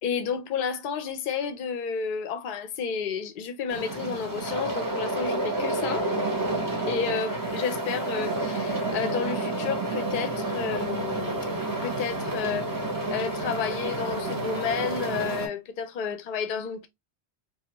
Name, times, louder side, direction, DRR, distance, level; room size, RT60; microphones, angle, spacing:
voice 1, 0.0-6.1 6.9-11.5 11.8-12.7 13.1-16.9, left 6 dB, 55° left, 0.6 m, -31 dB
sound 1, 3.7-15.5, right 2 dB, 20° right, 0.6 m, -30 dB
2.5 x 2.3 x 2.8 m
omnidirectional pair, 1.2 m